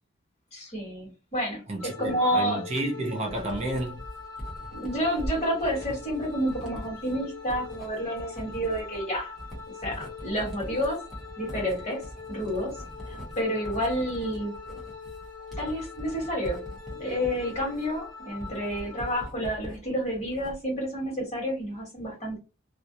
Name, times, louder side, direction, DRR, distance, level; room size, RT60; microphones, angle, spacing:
voice 1, 0.5-2.6 4.7-9.3 9.8-11.0 11.4-12.8 13.1-14.5 15.6-16.6 17.0-22.4, equal, 35° left, 1.3 m, -30 dB
voice 2, 1.7-4.0, right 1 dB, 30° right, 0.4 m, -31 dB
sound 1, 1.8-19.3, left 5 dB, 80° left, 0.9 m, -43 dB
Writing, 3.3-19.8 20.1-20.8, equal, ahead, 0.8 m, -41 dB
2.4 x 2.0 x 2.7 m
head